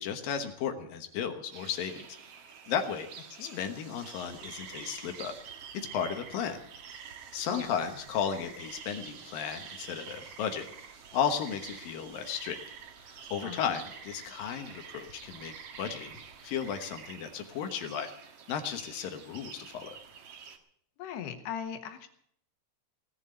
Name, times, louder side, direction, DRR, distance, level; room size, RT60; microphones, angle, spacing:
voice 1, 0.0-2.1 2.7-3.1 3.4-5.3 5.7-6.6 7.3-10.7 11.1-12.6 13.1-18.1 18.5-20.0, left 7 dB, 70° left, 6 dB, 2.7 m, -34 dB
sound 1, 1.5-20.6, right 6 dB, 60° right, 1.7 m, -48 dB
voice 2, 13.4-13.8 21.0-22.1, left 8 dB, 85° left, 7 dB, 3.4 m, -39 dB
18.0 x 7.2 x 9.6 m, 0.69 s
omnidirectional pair, 4.6 m